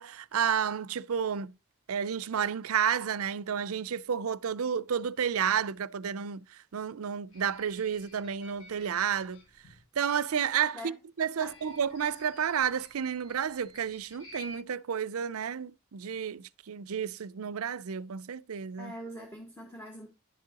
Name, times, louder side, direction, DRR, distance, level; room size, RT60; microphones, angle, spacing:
voice 1, 0.0-1.5 1.9-6.4 6.7-9.4 10.0-10.9 11.2-18.9, right 7 dB, 80° right, 0.5 m, -31 dB
sound 1, 7.3-9.8 11.4-14.6, left 1 dB, 70° left, 5.2 m, -53 dB
voice 2, 18.8-20.1, equal, 10° left, 1.6 m, -43 dB
10.5 x 7.5 x 2.9 m
head